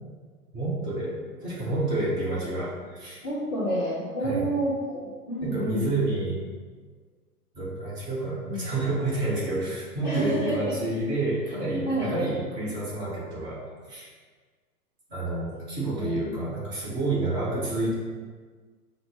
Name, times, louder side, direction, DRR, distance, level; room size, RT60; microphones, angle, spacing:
voice 1, 0.5-3.3 4.2-4.5 5.4-6.4 7.5-13.6 13.9-14.1 15.1-17.9, right 2 dB, 30° right, -6 dB, 1.3 m, -29 dB
voice 2, 3.2-5.9 8.5-8.6 10.0-10.7 11.9-12.1 15.9-16.4, right 1 dB, 15° left, -10 dB, 0.5 m, -29 dB
6.0 x 2.1 x 3.4 m, 1.5 s
figure-of-eight pair, 110°, 47 cm